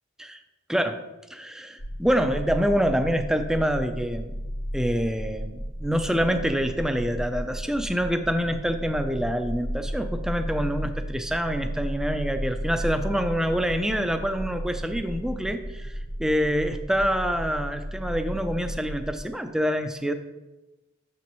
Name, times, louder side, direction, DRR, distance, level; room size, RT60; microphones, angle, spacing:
voice 1, 1.3-4.3 4.7-20.1, equal, 5° right, 7 dB, 0.4 m, -26 dB
sound 1, 1.8-19.2, equal, 75° left, 1.6 m, -34 dB
7.0 x 5.9 x 3.0 m, 1.0 s
head